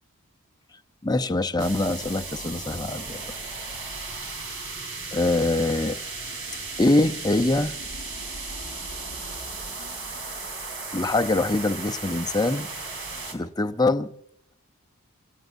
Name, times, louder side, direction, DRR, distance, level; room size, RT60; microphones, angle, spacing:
voice 1, 1.0-3.4 4.2-4.3 5.1-6.0 6.8-7.7 10.9-12.7 13.3-14.1, left 2 dB, 20° left, 0.6 m, -24 dB
sound 1, 1.6-13.3, right 3 dB, 60° right, 4.0 m, -35 dB
29.0 x 17.0 x 2.7 m
head